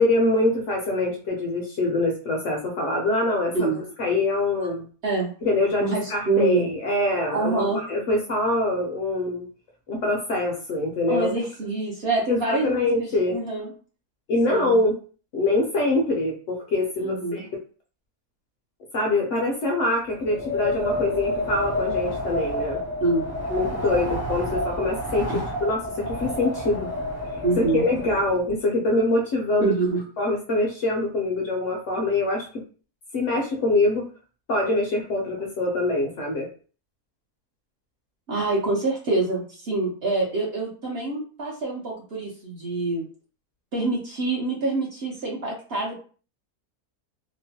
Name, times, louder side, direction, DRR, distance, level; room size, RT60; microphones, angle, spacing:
voice 1, 0.0-3.7 4.0-4.9 5.4-9.4 9.9-11.3 12.3-13.4 14.3-15.0 15.3-17.5 18.9-22.8 23.5-26.9 27.7-29.7 30.2-32.5 33.1-34.1 34.5-36.5, left 2 dB, 65° left, 0 dB, 0.8 m, -24 dB
voice 2, 5.8-6.7 7.3-7.8 11.1-13.7 14.5-14.8 17.0-17.4 23.0-23.3 25.3-25.4 27.4-27.8 29.6-30.0 38.3-43.0 43.7-46.0, right 2 dB, 50° right, -5 dB, 0.8 m, -26 dB
Wind, 20.1-28.5, left 1 dB, 25° left, 0.3 m, -29 dB
2.9 x 2.1 x 2.7 m, 0.40 s
omnidirectional pair, 1.6 m